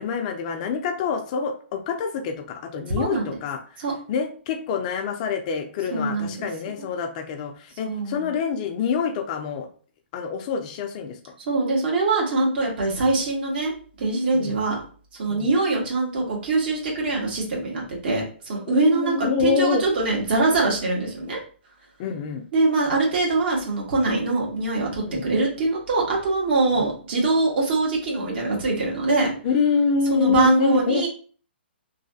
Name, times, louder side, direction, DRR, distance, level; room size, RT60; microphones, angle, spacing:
voice 1, 0.0-3.6 4.1-9.7 10.1-11.3 14.3-14.5 15.3-15.5 18.7-19.8 22.0-22.4 25.1-25.2 26.7-26.9 29.4-31.0, left 6 dB, 40° left, 5 dB, 0.4 m, -26 dB
voice 2, 2.9-3.3 3.8-3.9 5.9-6.5 6.8-6.9 7.9-8.3 11.5-13.7 14.0-14.8 15.2-21.4 22.5-29.3 30.1-31.1, right 3 dB, 55° right, -1 dB, 1.3 m, -23 dB
3.1 x 2.3 x 2.6 m, 0.42 s
hypercardioid pair, 135°, 6 cm